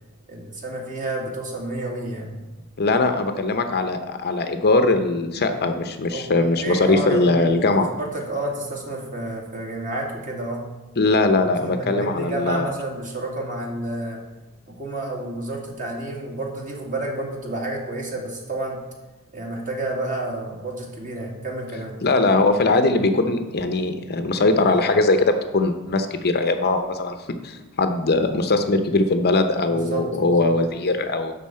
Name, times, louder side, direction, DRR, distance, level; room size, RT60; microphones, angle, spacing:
voice 1, 0.3-2.4 6.1-6.3 6.6-7.3 7.7-10.6 11.5-14.2 14.8-18.8 19.3-21.9 29.7-30.5, right 2 dB, 35° right, -1 dB, 2.1 m, -30 dB
voice 2, 2.8-7.9 11.0-12.7 22.0-27.1 27.4-31.3, left 2 dB, 45° left, 7 dB, 0.7 m, -20 dB
11.0 x 4.0 x 7.5 m, 1.1 s
head